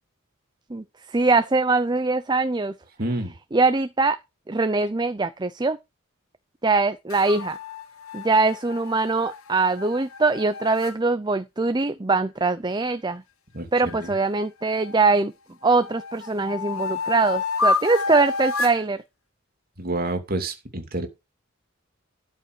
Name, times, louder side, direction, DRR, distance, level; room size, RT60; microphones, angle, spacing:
voice 1, 0.7-2.7 3.5-4.2 4.5-5.8 6.6-7.6 8.1-13.2 13.7-15.3 15.6-19.0, right 3 dB, 20° right, 0.5 m, -22 dB
voice 2, 3.0-3.3 13.5-14.1 19.8-21.1, right 2 dB, 45° right, 2.7 m, -29 dB
sound 1, 7.1-10.9 13.9-15.1 15.6-18.8, left 3 dB, 90° left, 1.6 m, -30 dB
13.0 x 5.2 x 6.5 m
head